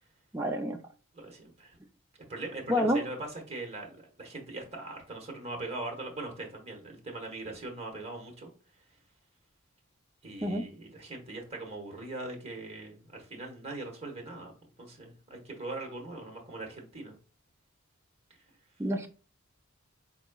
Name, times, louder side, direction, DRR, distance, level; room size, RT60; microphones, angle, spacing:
voice 1, 0.3-0.8 2.7-3.0 10.4-10.7 18.8-19.1, equal, 10° right, 3 dB, 0.5 m, -28 dB
voice 2, 1.1-1.8 2.3-8.5 10.2-14.5 14.8-17.1, right 2 dB, 30° right, 1 dB, 1.2 m, -41 dB
4.6 x 4.0 x 2.3 m, 0.37 s
head